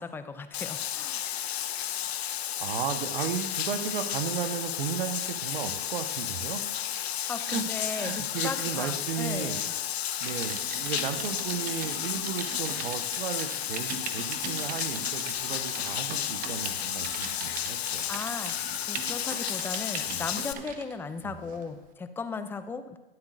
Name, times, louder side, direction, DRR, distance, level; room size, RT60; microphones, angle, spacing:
voice 1, 0.0-1.3 7.1-9.7 17.9-23.0, left 4 dB, 5° left, 11 dB, 0.4 m, -37 dB
Bathtub (filling or washing), 0.5-20.5, left 11 dB, 75° left, 0.7 m, -32 dB
voice 2, 2.6-6.9 7.5-7.6 7.9-9.6 10.2-18.0 20.0-20.2 21.2-21.4, right 8 dB, 60° right, 8 dB, 1.3 m, -35 dB
Typing, 10.2-20.9 21.5-21.7, right 6 dB, 25° right, 1.1 m, -41 dB
23.5 x 7.9 x 2.6 m, 1.1 s
hypercardioid pair, 120°, 31 cm